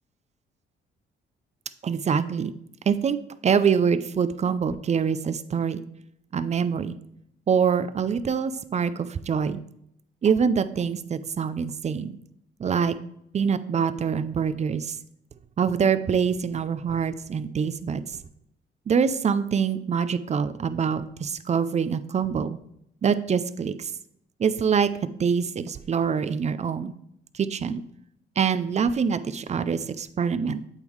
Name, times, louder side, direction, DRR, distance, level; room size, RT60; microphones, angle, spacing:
voice 1, 1.8-2.5 2.9-3.2 3.4-5.8 6.3-7.0 7.5-9.6 10.2-12.2 12.6-13.0 13.3-14.9 15.6-18.0 18.9-22.6 23.0-23.9 24.4-24.9 25.2-26.9 27.3-27.8 28.4-30.6, right 6 dB, 35° right, 13 dB, 0.5 m, -25 dB
8.1 x 3.6 x 4.6 m, 0.74 s
cardioid pair, 90°, 20 cm